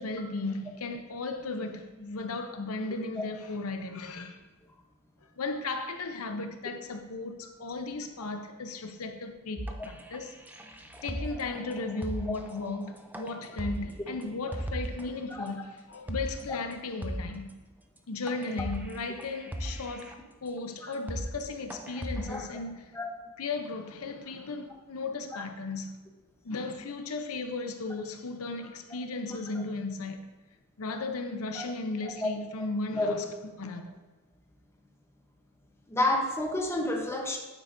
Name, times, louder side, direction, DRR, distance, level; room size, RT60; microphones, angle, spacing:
voice 1, 0.0-4.4 5.4-10.3 11.0-17.5 18.1-23.0 23.4-25.9 26.4-30.2 30.8-33.9, left 3 dB, 80° left, 0.7 m, -36 dB
sound 1, 9.6-15.1 15.5-15.6 15.9-16.4 16.7-16.8 17.0-17.5 18.0-18.1 18.3-20.1 20.6-20.7 20.9-21.4 21.7-22.5, right 1 dB, 10° right, 0.4 m, -38 dB
voice 2, 35.9-37.4, left 1 dB, 10° left, 0.8 m, -29 dB
9.0 x 7.6 x 2.6 m
head